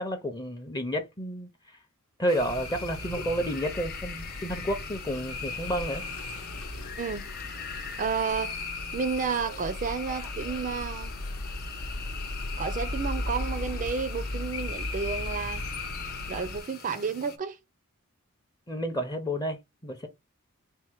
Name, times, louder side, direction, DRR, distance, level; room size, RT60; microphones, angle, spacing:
voice 1, 0.0-1.8 2.2-6.0 18.7-20.1, equal, 20° left, 0.5 m, -31 dB
sound 1, 2.3-17.4, left 5 dB, 45° left, 0.9 m, -41 dB
sound 2, 2.4-16.6, left 2 dB, 75° left, 0.8 m, -37 dB
voice 2, 8.0-8.5 8.9-11.1 12.6-15.6 16.3-17.6, right 5 dB, 35° right, 0.4 m, -31 dB
4.4 x 2.1 x 4.5 m
head